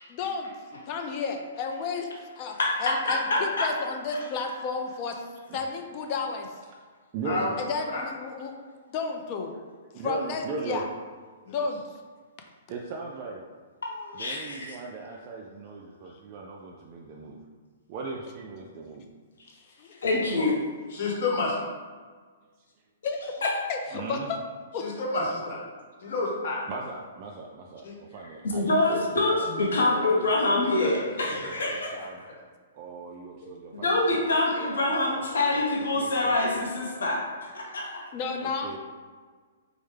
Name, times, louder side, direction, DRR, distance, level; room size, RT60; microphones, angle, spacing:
voice 1, 0.1-0.5 0.9-2.1 2.4-5.2 5.5-6.5 7.6-8.5 8.9-9.5 10.0-10.9 11.5-11.8 19.8-20.0 23.0-23.2 23.7-24.5 24.7-25.0 38.1-38.8, left 4 dB, 35° left, 4 dB, 0.4 m, -32 dB
voice 2, 3.1-3.7 13.8-14.7 20.0-20.5 23.4-23.5 28.4-32.1 33.7-38.0, left 2 dB, 85° left, -2 dB, 0.8 m, -26 dB
voice 3, 7.1-7.6 9.9-10.8 12.7-13.4 14.1-17.4 17.9-19.1 23.9-24.3 26.7-29.5 30.0-32.2 32.7-34.3 34.9-35.2 35.5-35.6 36.0-36.4 38.4-38.8, right 4 dB, 35° right, -1 dB, 0.3 m, -38 dB
voice 4, 20.9-21.5 24.8-25.6 26.0-26.6 27.8-27.9 30.8-30.9, left 3 dB, 60° left, -2 dB, 1.0 m, -29 dB
4.5 x 2.1 x 3.2 m, 1.5 s
hypercardioid pair, 150°, 0 cm